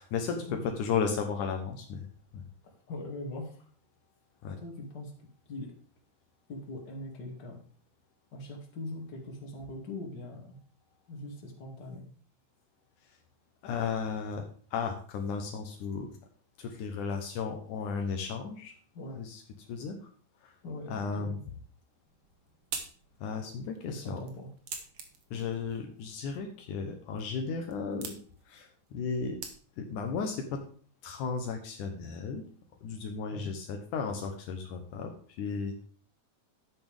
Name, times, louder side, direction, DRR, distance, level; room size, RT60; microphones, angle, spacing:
voice 1, 0.0-2.1 2.3-2.4 4.4-4.6 13.6-14.4 14.7-16.1 16.6-18.7 19.2-19.4 19.7-20.1 20.4-20.5 20.9-21.4 23.2-24.2 25.3-28.1 28.5-29.4 29.8-30.6 31.0-32.5 32.8-35.9, left 5 dB, 75° left, 4 dB, 2.5 m, -34 dB
voice 2, 2.6-3.6 4.6-5.1 5.5-5.7 6.5-7.6 8.3-10.6 11.1-12.1 18.9-19.2 20.6-21.4 23.9-24.5 33.3-33.5, left 1 dB, 35° left, 0 dB, 2.8 m, -41 dB
sound 1, 22.0-30.0, right 5 dB, 50° right, 1.9 m, -47 dB
11.0 x 8.9 x 3.6 m, 0.43 s
omnidirectional pair, 3.7 m